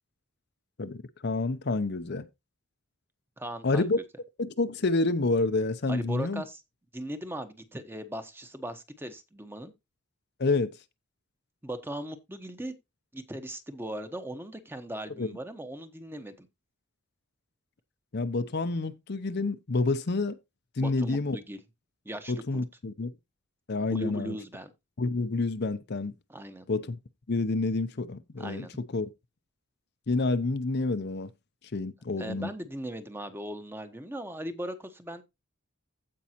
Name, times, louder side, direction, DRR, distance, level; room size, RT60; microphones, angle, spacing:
voice 1, 0.8-2.3 3.6-4.0 4.4-6.4 10.4-10.7 15.2-15.4 18.1-20.4 20.8-21.4 22.3-23.1 23.7-24.4 25.0-26.1 26.7-27.0 27.3-28.7 28.9-29.1 30.1-31.3 31.7-32.5, left 3 dB, 50° left, 0.6 m, -28 dB
voice 2, 3.4-3.8 5.9-6.6 6.9-9.7 11.6-12.7 13.1-16.5 20.8-21.6 22.0-22.6 23.9-24.7 26.3-26.7 28.4-28.7 32.2-35.2, right 1 dB, 10° right, 1.0 m, -38 dB
15.5 x 5.4 x 2.9 m
head